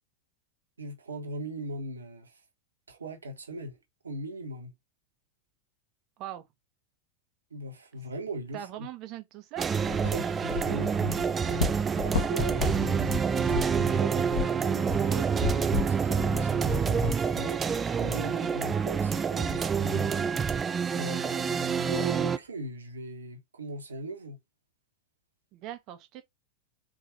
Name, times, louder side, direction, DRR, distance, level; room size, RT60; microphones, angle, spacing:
voice 1, 0.8-2.4 2.9-3.8 4.0-4.7 7.5-8.9 10.0-24.4, right 1 dB, 70° right, 1.3 m, -40 dB
voice 2, 8.5-9.7 25.5-26.2, right 12 dB, 40° right, 1.0 m, -41 dB
sound 1, 9.6-22.4, right 6 dB, 20° right, 0.4 m, -27 dB
sound 2, 9.7-18.2, left 5 dB, 65° left, 1.4 m, -35 dB
4.6 x 3.8 x 2.9 m
figure-of-eight pair, 90°, 0 cm